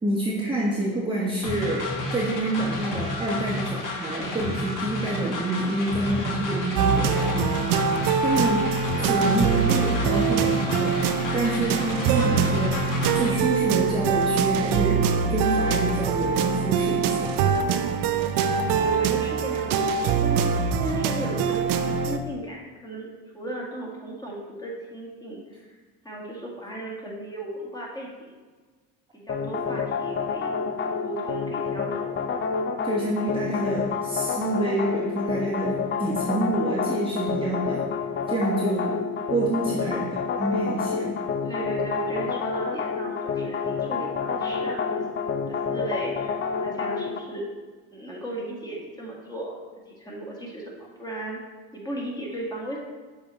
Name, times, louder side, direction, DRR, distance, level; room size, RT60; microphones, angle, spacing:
voice 1, 0.0-7.5 8.2-8.7 9.0-11.0 11.3-12.9 13.1-17.4 32.8-37.9 38.3-39.0 39.3-41.2, right 2 dB, 15° right, -5 dB, 1.1 m, -27 dB
sound 1, 1.4-13.3, left 1 dB, 55° left, 1.2 m, -31 dB
sound 2, 6.8-22.2, right 6 dB, 65° right, 0.6 m, -24 dB
voice 2, 18.6-20.4 20.7-25.8 26.0-28.3 29.1-32.2 39.7-40.0 41.4-45.0 45.5-47.4 47.9-49.6 49.9-51.4 51.7-52.8, right 1 dB, 10° left, -4 dB, 1.8 m, -36 dB
sound 3, 29.3-47.2, left 5 dB, 35° left, 0.5 m, -29 dB
7.1 x 4.2 x 3.2 m, 1.4 s
supercardioid pair, 75°, 37 cm